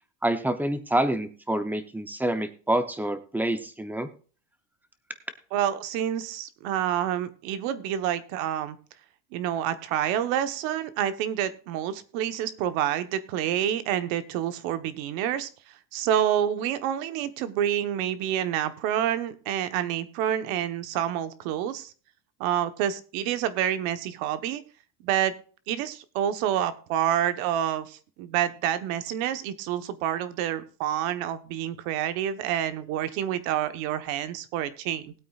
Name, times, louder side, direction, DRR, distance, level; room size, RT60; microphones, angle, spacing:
voice 1, 0.2-4.1, right 1 dB, 5° right, 10 dB, 0.6 m, -27 dB
voice 2, 5.5-8.8 9.3-15.5 15.9-21.9 22.4-24.6 25.0-25.3 25.7-35.1, right 10 dB, 75° right, 12 dB, 1.2 m, -28 dB
19.0 x 8.5 x 2.4 m, 0.40 s
cardioid pair, 145°, 42 cm